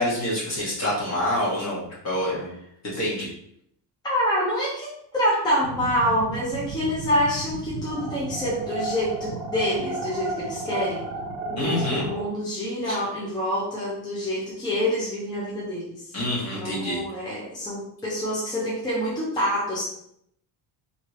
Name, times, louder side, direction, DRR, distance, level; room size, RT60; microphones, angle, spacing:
voice 1, 0.0-2.5 2.8-3.3 11.6-12.1 12.8-13.0 16.1-17.0, left 1 dB, 40° left, -5 dB, 1.3 m, -26 dB
voice 2, 4.0-11.1 11.5-16.1 16.5-19.8, equal, 10° left, -7 dB, 0.7 m, -27 dB
sound 1, 5.6-12.2, right 3 dB, 60° right, 0.7 m, -33 dB
3.1 x 2.8 x 3.0 m, 0.72 s
cardioid pair, 155°, 42 cm